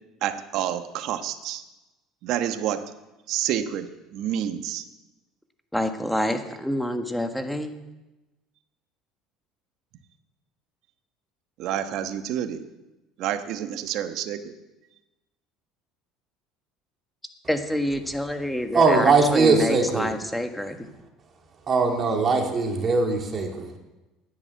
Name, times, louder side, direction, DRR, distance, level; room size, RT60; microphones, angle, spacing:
voice 1, 0.2-1.6 2.2-2.9 3.3-4.8 11.6-12.7 13.2-14.5, right 10 dB, 65° right, 9 dB, 1.2 m, -28 dB
voice 2, 5.7-7.7 17.5-20.7, left 1 dB, 5° left, 6 dB, 1.5 m, -27 dB
voice 3, 18.7-20.1 21.7-23.8, right 4 dB, 35° right, 2 dB, 2.9 m, -21 dB
10.5 x 10.0 x 8.2 m, 1.0 s
supercardioid pair, 90°, 0 cm